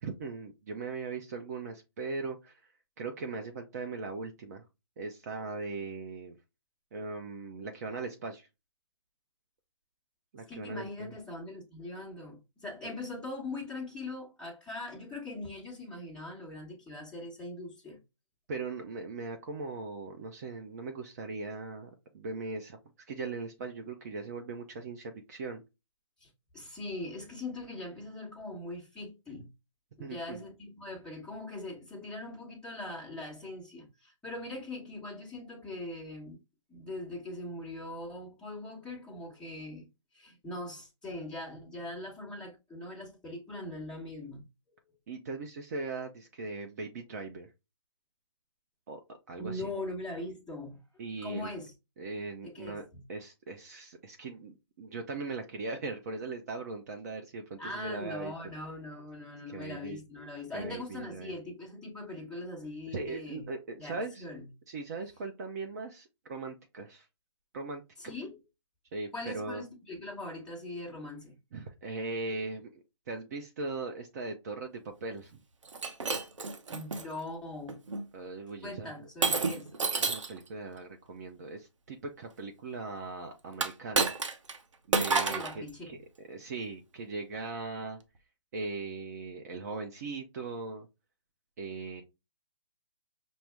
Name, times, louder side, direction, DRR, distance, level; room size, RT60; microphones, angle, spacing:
voice 1, 0.0-2.6 3.0-4.7 5.0-6.4 6.9-8.5 10.3-11.1 12.8-12.9 18.5-22.8 23.1-25.6 30.0-30.4 45.1-47.5 48.9-49.0 49.3-49.7 51.0-51.5 52.0-58.3 59.5-60.0 60.5-61.3 62.9-64.2 64.7-67.1 67.5-68.2 68.9-69.6 71.5-75.4 78.1-79.6 80.0-84.1 84.9-86.0 86.3-88.0 88.5-90.9 91.6-92.0, right 3 dB, 30° right, 0.6 m, -39 dB
voice 2, 10.5-18.0 26.2-26.3 26.5-29.5 30.0-36.4 36.7-39.9 40.1-44.4 49.4-50.8 51.2-51.7 52.4-53.0 57.6-63.5 63.8-64.5 68.0-68.4 69.1-71.3 76.7-77.8 78.6-79.7 85.3-86.0, left 2 dB, 5° left, 1.1 m, -41 dB
Shatter, 75.7-77.0 77.7-78.0 79.2-80.4 83.5-84.6 84.9-85.6, right 4 dB, 80° right, 0.8 m, -29 dB
6.0 x 2.0 x 3.3 m
hypercardioid pair, 155°, 16 cm